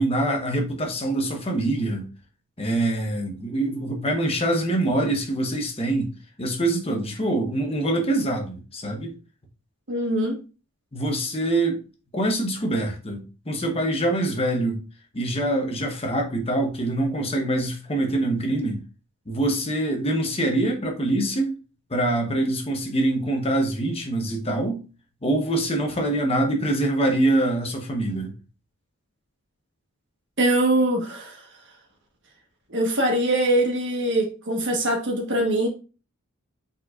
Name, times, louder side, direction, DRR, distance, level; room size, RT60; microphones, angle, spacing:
voice 1, 0.0-2.1 2.6-6.1 6.4-9.1 10.9-11.8 12.1-14.8 15.1-18.8 19.3-21.6 21.9-24.8 25.2-28.3, right 1 dB, 25° left, 0.9 m, -24 dB
voice 2, 9.9-10.3 30.4-31.4 32.7-35.7, right 1 dB, 55° right, 1.3 m, -22 dB
5.2 x 4.1 x 2.5 m
head